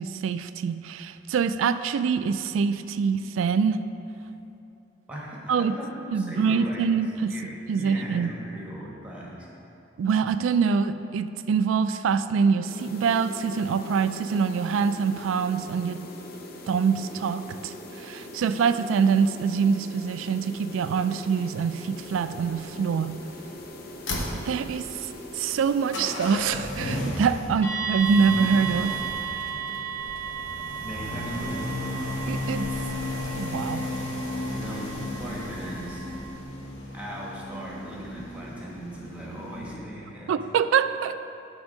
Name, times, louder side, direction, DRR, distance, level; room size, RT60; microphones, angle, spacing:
voice 1, 0.0-3.9 5.5-5.8 6.1-8.3 10.0-16.1 16.7-23.2 24.5-25.1 25.3-28.9 32.3-32.7 33.4-33.9 40.3-41.2, right 6 dB, 90° right, 12 dB, 0.3 m, -25 dB
voice 2, 5.1-6.9 7.3-9.5 30.8-32.0 32.8-32.9 34.5-36.1 36.9-40.4, equal, 5° right, -4 dB, 1.2 m, -38 dB
sound 1, 12.6-26.4, left 1 dB, 55° left, 0.7 m, -42 dB
sound 2, 21.9-39.8, left 1 dB, 75° left, 1.1 m, -35 dB
sound 3, 27.6-36.3, right 7 dB, 15° left, 0.8 m, -35 dB
9.6 x 3.5 x 6.4 m, 2.9 s
head